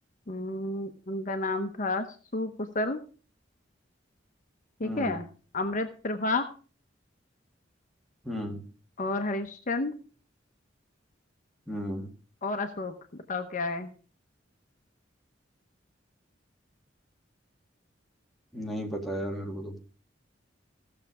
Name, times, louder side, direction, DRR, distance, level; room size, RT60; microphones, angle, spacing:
voice 1, 0.3-2.1 2.3-3.0 4.8-5.3 5.5-6.5 9.0-9.9 12.4-13.9, left 2 dB, 45° left, 7 dB, 0.8 m, -31 dB
voice 2, 4.8-5.2 8.2-8.6 11.7-12.1 18.5-19.8, equal, ahead, 0 dB, 1.9 m, -34 dB
16.0 x 6.8 x 4.8 m, 0.38 s
head